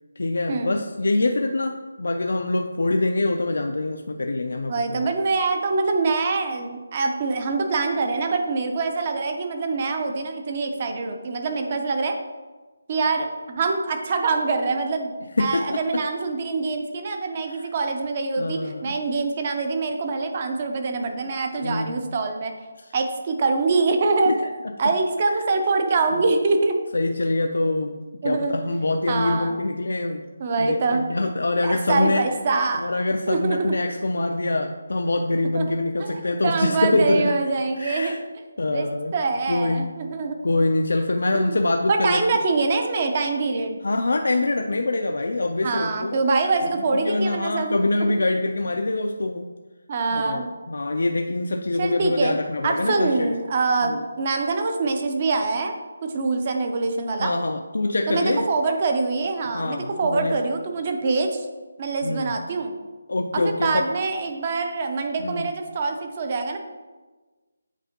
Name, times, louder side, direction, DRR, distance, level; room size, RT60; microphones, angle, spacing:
voice 1, 0.2-5.1 15.4-16.0 17.5-17.7 18.4-19.0 21.6-22.0 22.8-22.9 24.3-24.4 25.3-25.4 26.1-26.2 26.9-30.3 30.6-32.2 32.8-37.3 37.8-38.2 38.6-39.1 39.5-39.9 40.4-42.2 43.8-46.1 46.7-49.5 50.1-53.3 53.8-54.0 57.2-58.4 59.5-60.4 62.0-62.4 63.1-63.9 65.2-65.5, left 2 dB, 70° left, 4 dB, 0.4 m, -24 dB
voice 2, 4.7-12.1 12.9-15.1 15.4-22.5 22.9-24.3 24.8-26.8 28.2-28.5 29.1-29.6 30.4-31.0 31.6-32.9 33.3-33.7 35.5-35.7 36.0-38.2 38.7-38.9 39.1-40.4 41.3-41.6 41.9-43.8 45.6-48.1 49.9-50.5 51.8-52.3 52.6-55.7 56.0-57.3 58.1-61.5 61.8-62.7 63.3-66.6, right 3 dB, 25° right, 5 dB, 0.5 m, -24 dB
8.1 x 4.3 x 2.8 m, 1.3 s
hypercardioid pair, 175°, 0 cm